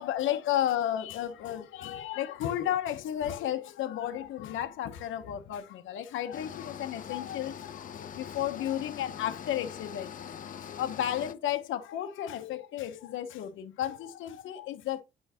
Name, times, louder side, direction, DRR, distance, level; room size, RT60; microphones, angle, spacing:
voice 1, 0.0-15.0, left 11 dB, 85° left, 0.9 m, -33 dB
sound 1, 6.3-11.3, left 8 dB, 40° left, 0.7 m, -43 dB
8.1 x 5.4 x 2.8 m
cardioid pair, 90°, 20 cm